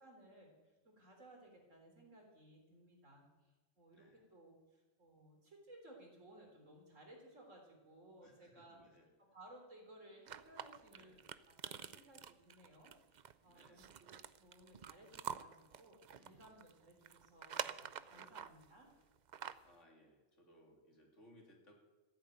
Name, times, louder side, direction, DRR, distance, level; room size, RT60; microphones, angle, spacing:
voice 1, 0.0-8.8 9.3-11.2 11.6-18.9, right 1 dB, 75° right, 1 dB, 4.0 m, -60 dB
voice 2, 3.9-4.2 8.2-9.4 10.9-11.2 13.4-14.0 16.1-16.6 18.1-18.4 19.6-21.7, left 1 dB, 70° left, 1 dB, 3.5 m, -66 dB
sound 1, 10.3-18.7 19.2-19.7, right 7 dB, 50° right, 0.5 m, -48 dB
15.0 x 9.0 x 9.1 m, 1.2 s
omnidirectional pair, 1.3 m